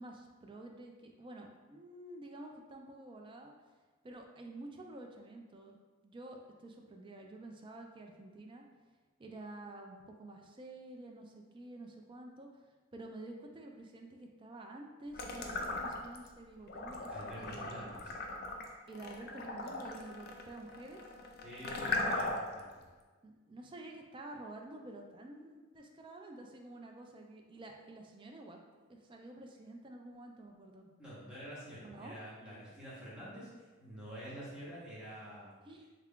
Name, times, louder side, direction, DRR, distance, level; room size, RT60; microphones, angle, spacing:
voice 1, 0.0-3.5 4.0-5.8 6.0-8.7 9.2-12.5 12.9-18.0 18.9-21.0 23.2-28.6 28.9-30.9 31.8-32.1 35.7-35.9, right 2 dB, 25° right, 2 dB, 0.3 m, -49 dB
sound 1, 15.1-16.3 16.7-22.6, left 2 dB, 50° left, 0.4 m, -38 dB
voice 2, 17.1-18.1 21.4-22.9 31.0-35.5, equal, 5° right, -9 dB, 1.0 m, -48 dB
3.3 x 2.3 x 3.6 m, 1.4 s
head